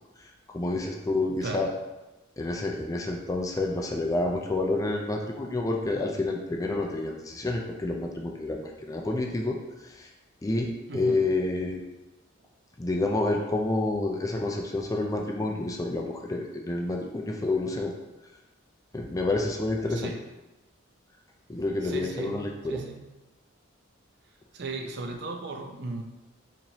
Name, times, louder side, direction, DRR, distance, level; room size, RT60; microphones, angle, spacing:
voice 1, 0.5-1.7 2.4-10.1 10.4-11.8 12.8-17.9 18.9-20.1 21.5-22.8, left 2 dB, 15° left, 1 dB, 0.3 m, -29 dB
voice 2, 10.9-11.2 19.9-20.2 21.8-23.1 24.5-26.0, right 3 dB, 60° right, 3 dB, 0.5 m, -36 dB
4.2 x 3.0 x 2.7 m, 1.1 s
head